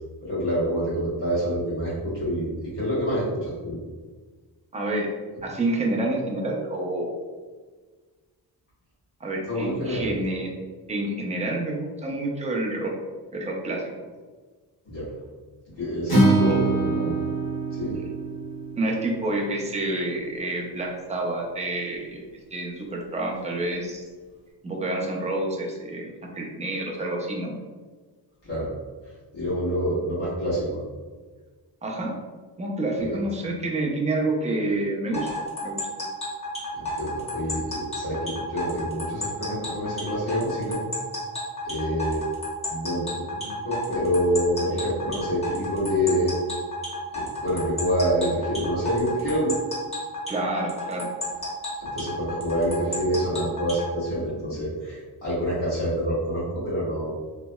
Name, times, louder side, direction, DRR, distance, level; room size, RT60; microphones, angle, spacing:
voice 1, 0.2-3.8 9.5-10.1 14.8-15.1 15.8-17.1 17.7-18.0 28.4-28.7 29.3-30.8 33.0-33.2 36.7-40.8 41.6-42.2 42.7-46.3 47.1-49.5 51.8-57.1, equal, 80° left, -10 dB, 1.4 m, -27 dB
voice 2, 4.7-5.1 5.4-7.1 9.2-10.5 10.9-12.9 13.3-13.8 16.4-16.6 18.8-22.2 22.5-24.0 24.6-27.6 31.8-32.1 32.6-35.3 35.6-35.8 50.3-51.1, right 2 dB, 20° right, -1 dB, 0.4 m, -28 dB
Acoustic guitar, 16.1-20.3, right 2 dB, 60° left, 1.2 m, -25 dB
sound 1, 35.1-53.9, left 2 dB, 15° left, 0.8 m, -32 dB
3.0 x 2.7 x 2.2 m, 1.4 s
wide cardioid pair, 170°, 41 cm